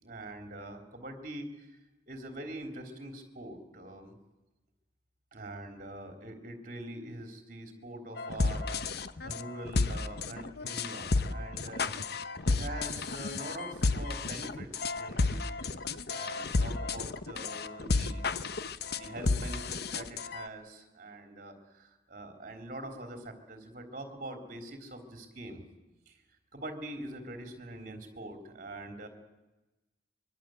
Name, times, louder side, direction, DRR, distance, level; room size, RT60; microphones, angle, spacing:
voice 1, 0.0-1.7 2.1-4.1 5.3-8.8 9.2-11.9 12.5-15.4 16.1-18.2 18.9-25.6 26.1-26.2 26.5-29.1, right 1 dB, 50° right, 5 dB, 3.7 m, -44 dB
sound 1, 8.2-20.5, left 3 dB, 65° left, 1.0 m, -32 dB
24.5 x 23.0 x 7.9 m, 1.0 s
head